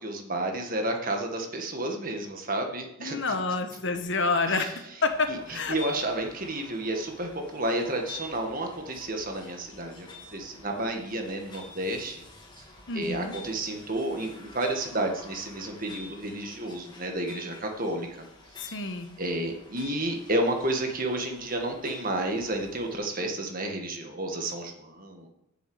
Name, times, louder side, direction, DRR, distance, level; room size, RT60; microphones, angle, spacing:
voice 1, 0.0-3.4 4.5-4.7 5.3-12.2 12.9-18.3 19.2-25.3, right 1 dB, 40° right, 3 dB, 1.8 m, -31 dB
voice 2, 3.0-5.8 12.9-13.4 18.6-19.1, left 3 dB, 60° left, 6 dB, 1.2 m, -28 dB
sound 1, 5.0-23.0, left 3 dB, 20° left, 2.3 m, -48 dB
8.2 x 6.9 x 8.0 m, 0.85 s
head